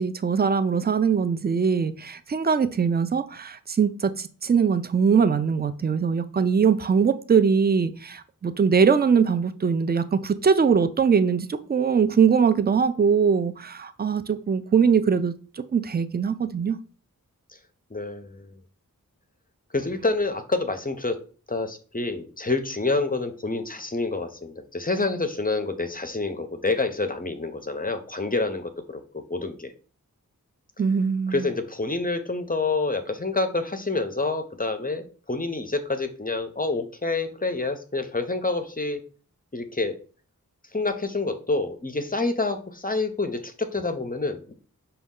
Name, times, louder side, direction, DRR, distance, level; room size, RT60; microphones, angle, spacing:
voice 1, 0.0-15.3 15.7-16.8 30.8-31.5, right 6 dB, 30° right, 11 dB, 0.3 m, -22 dB
voice 2, 17.9-18.5 19.7-21.2 21.5-29.7 31.3-39.0 39.5-40.0 40.7-44.5, left 3 dB, 25° left, 8 dB, 0.5 m, -28 dB
5.1 x 2.3 x 3.6 m, 0.39 s
wide cardioid pair, 45°, 35 cm